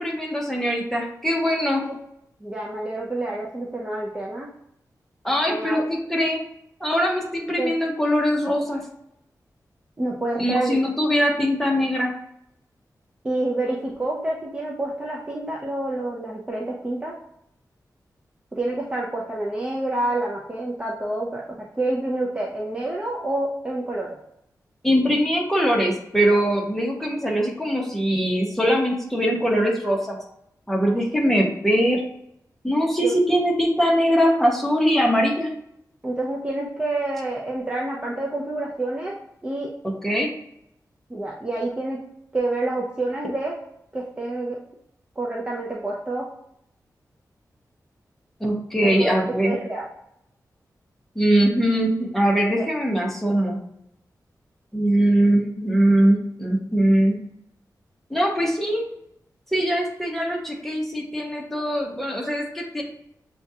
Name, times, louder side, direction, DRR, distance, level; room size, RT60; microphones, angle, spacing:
voice 1, 0.0-1.8 5.2-6.4 6.8-8.8 10.4-12.1 24.8-30.2 30.7-32.0 32.6-35.5 39.8-40.3 48.4-49.5 51.1-53.6 54.7-57.2 58.1-58.8 59.5-62.8, equal, 5° left, -2 dB, 0.9 m, -21 dB
voice 2, 2.4-4.5 5.5-5.8 7.6-7.7 10.0-10.8 13.2-17.1 18.5-21.4 21.8-24.2 33.0-33.2 36.0-39.2 39.4-39.7 41.1-42.0 42.3-43.5 43.9-44.6 45.2-46.3 48.8-49.9 52.6-52.7, right 2 dB, 15° right, -3 dB, 0.5 m, -28 dB
6.9 x 2.3 x 2.7 m, 0.77 s
wide cardioid pair, 155°, 7 cm